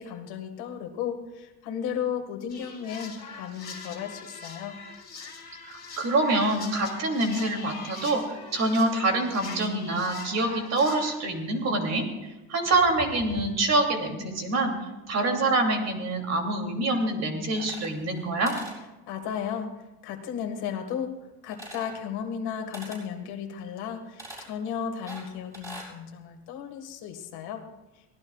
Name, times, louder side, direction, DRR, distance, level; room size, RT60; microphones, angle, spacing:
voice 1, 0.0-4.8 19.1-19.7 20.0-21.2 21.4-27.7, left 8 dB, 70° left, 5 dB, 1.9 m, -34 dB
sound 1, 2.5-11.2, left 4 dB, 25° left, 3.0 m, -43 dB
voice 2, 5.6-12.0 12.5-14.7 15.1-18.5, right 2 dB, 40° right, 2 dB, 2.9 m, -26 dB
sound 2, 17.5-18.2 18.5-18.8 21.5-22.0 22.7-23.1 24.2-24.5 25.1-25.9, right 1 dB, 5° right, 6.4 m, -42 dB
23.5 x 17.5 x 2.4 m, 1.1 s
cardioid pair, 150°, 41 cm